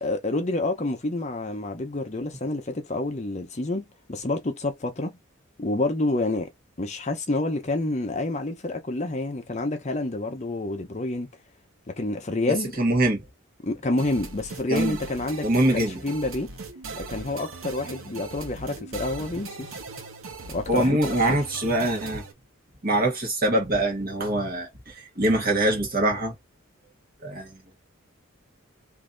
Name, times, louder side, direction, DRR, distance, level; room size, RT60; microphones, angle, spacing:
voice 1, 0.0-5.2 5.6-6.5 6.8-11.3 11.9-12.8 13.6-16.5 17.0-19.8 20.5-21.0 21.3-21.4, left 2 dB, 35° left, 0.7 m, -28 dB
voice 2, 12.8-13.2 14.7-15.0 15.4-16.0 20.7-22.2 22.8-26.3 27.2-27.5, right 1 dB, 45° right, 1.5 m, -23 dB
sound 1, 14.0-22.3, right 3 dB, 80° right, 1.0 m, -39 dB
3.2 x 2.7 x 3.8 m
head